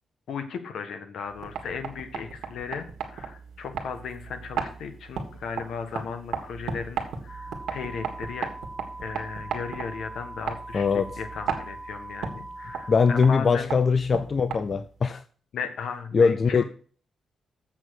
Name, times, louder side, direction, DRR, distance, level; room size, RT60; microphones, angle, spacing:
voice 1, 0.3-8.5 9.0-13.7 15.5-16.6, left 6 dB, 80° left, 1.3 m, -36 dB
sound 1, 1.3-15.0, right 6 dB, 90° right, 1.7 m, -36 dB
sound 2, 7.3-13.3, right 1 dB, 20° left, 1.8 m, -41 dB
voice 2, 10.7-11.2 12.9-15.2 16.1-16.6, left 5 dB, 45° left, 0.5 m, -22 dB
7.7 x 6.3 x 6.3 m
cardioid pair, 80°, 0 cm